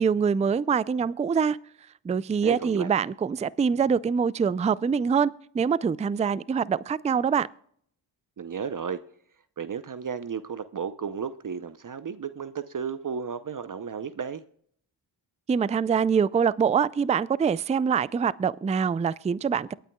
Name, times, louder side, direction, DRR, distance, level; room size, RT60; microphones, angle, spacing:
voice 1, 0.0-1.6 2.1-5.3 5.5-7.5 15.5-19.7, right 6 dB, 15° right, 0.3 m, -24 dB
voice 2, 2.4-2.9 8.4-9.0 9.6-14.4, right 6 dB, 40° right, 0.7 m, -33 dB
23.0 x 9.2 x 2.3 m
supercardioid pair, 40°, 48 cm